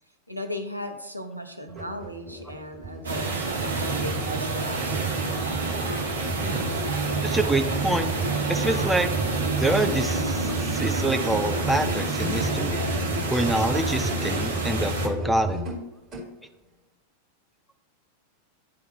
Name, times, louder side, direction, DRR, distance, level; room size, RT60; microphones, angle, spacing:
voice 1, 0.3-5.0, equal, 85° right, 5 dB, 0.7 m, -36 dB
Musical instrument, 1.7-16.3, left 1 dB, 25° right, 2.2 m, -33 dB
sound 1, 3.0-15.1, right 4 dB, 70° right, 1.0 m, -28 dB
voice 2, 7.2-8.1 8.5-9.1 9.6-12.8 13.3-15.6, right 2 dB, 5° right, 6 dB, 0.5 m, -26 dB
10.5 x 3.5 x 3.2 m, 0.88 s
figure-of-eight pair, 90°, 0 cm